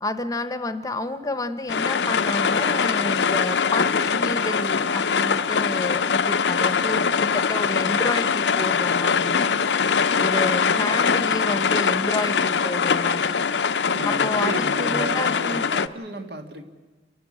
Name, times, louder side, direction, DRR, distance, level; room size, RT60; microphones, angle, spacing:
voice 1, 0.0-9.5 10.2-13.3 14.0-15.7, left 2 dB, 20° left, 10 dB, 0.8 m, -30 dB
sound 1, 1.7-15.9, left 6 dB, 90° left, 0.6 m, -22 dB
voice 2, 13.9-16.6, right 1 dB, 70° right, 6 dB, 1.8 m, -34 dB
29.5 x 11.0 x 8.6 m, 1.3 s
head